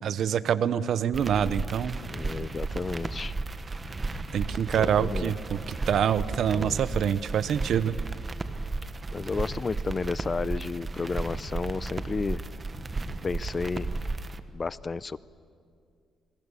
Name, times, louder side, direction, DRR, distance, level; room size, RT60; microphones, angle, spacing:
voice 1, 0.0-2.0 4.3-7.9, right 8 dB, 65° right, 15 dB, 0.8 m, -26 dB
sound 1, 1.1-14.4, right 3 dB, 30° right, 1.2 m, -34 dB
voice 2, 2.1-3.3 4.7-5.3 6.5-6.8 9.1-12.4 13.2-13.9 14.5-15.2, left 4 dB, 30° left, 18 dB, 0.5 m, -32 dB
26.0 x 22.5 x 7.1 m, 2.3 s
cardioid pair, 90°, 0 cm